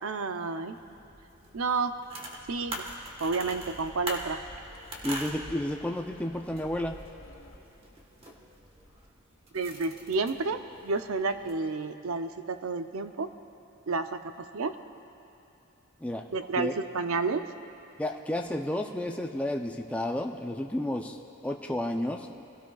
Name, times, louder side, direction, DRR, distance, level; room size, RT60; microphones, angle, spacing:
voice 1, 0.0-0.8 1.5-2.0 2.5-2.8 3.2-4.4 9.5-13.3 13.9-14.8 16.3-17.5, right 4 dB, 80° right, 8 dB, 0.6 m, -30 dB
sound 1, 0.7-11.5, right 1 dB, 25° right, 1.4 m, -43 dB
sound 2, 2.5-7.6, left 1 dB, 85° left, 1.9 m, -51 dB
voice 2, 5.0-7.0 16.0-16.3 16.5-16.8 18.0-22.4, left 1 dB, 5° left, 2 dB, 0.5 m, -32 dB
25.0 x 17.0 x 2.4 m, 2.9 s
head